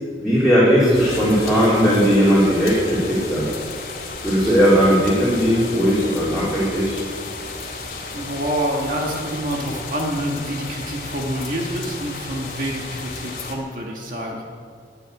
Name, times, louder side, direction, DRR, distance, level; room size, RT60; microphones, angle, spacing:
voice 1, 0.2-3.5 4.2-7.0, equal, 5° right, -10 dB, 3.6 m, -17 dB
sound 1, 0.9-13.6, left 3 dB, 55° left, 2.5 m, -33 dB
voice 2, 7.8-14.4, equal, 50° right, -1 dB, 1.8 m, -27 dB
11.5 x 9.4 x 9.8 m, 2.1 s
head